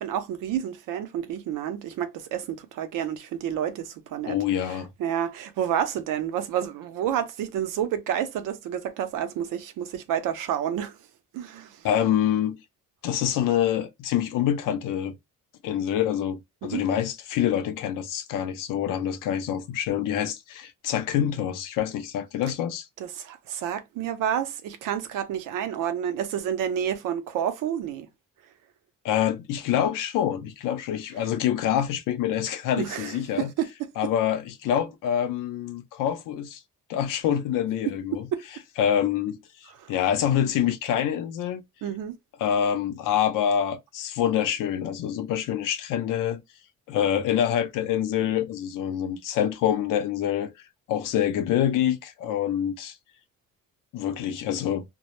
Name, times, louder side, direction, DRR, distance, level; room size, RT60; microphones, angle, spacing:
voice 1, 0.0-4.4 4.7-11.0 11.3-11.8 16.6-16.8 23.0-28.1 32.8-33.9 38.3-38.4 39.8-39.9 41.8-42.2, right 9 dB, 85° right, 0.5 m, -29 dB
voice 2, 4.3-4.9 11.8-12.6 13.0-15.1 15.6-22.9 29.0-33.5 34.0-36.6 36.9-38.3 38.8-39.4 39.9-41.6 42.4-46.4 46.9-50.5 50.9-53.0 53.9-54.8, left 10 dB, 85° left, 0.6 m, -26 dB
2.0 x 2.0 x 3.0 m
cardioid pair, 165°, 31 cm